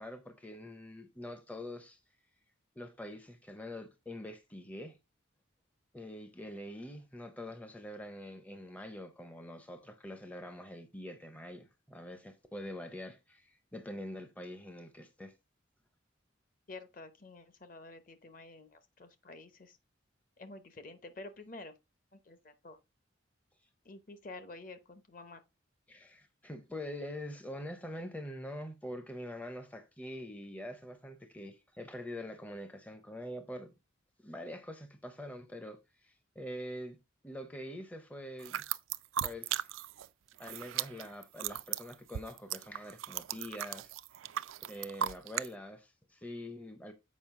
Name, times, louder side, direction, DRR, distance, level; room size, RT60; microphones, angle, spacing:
voice 1, 0.0-2.0 2.8-5.0 5.9-15.3 25.9-33.7 34.2-37.0 37.2-38.6 39.2-39.7 40.4-44.0 44.7-46.9, left 1 dB, 5° left, 0.5 m, -45 dB
voice 2, 16.7-19.8 20.4-21.7 22.1-22.8 23.8-25.4, left 2 dB, 45° left, 0.8 m, -49 dB
sound 1, 38.4-40.1 40.3-45.5, right 11 dB, 85° right, 0.4 m, -37 dB
7.3 x 5.0 x 3.6 m
head